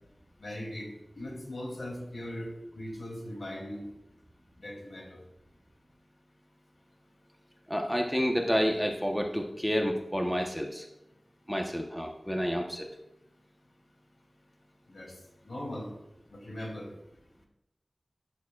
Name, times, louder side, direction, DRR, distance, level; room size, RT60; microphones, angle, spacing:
voice 1, 0.4-3.9 4.6-5.2 14.9-15.1 15.4-15.9 16.3-16.9, left 1 dB, 65° left, 0 dB, 2.8 m, -39 dB
voice 2, 7.7-10.9 11.5-12.9, equal, 5° left, 2 dB, 1.0 m, -29 dB
11.0 x 11.0 x 2.4 m, 0.87 s
wide cardioid pair, 50°, 0 cm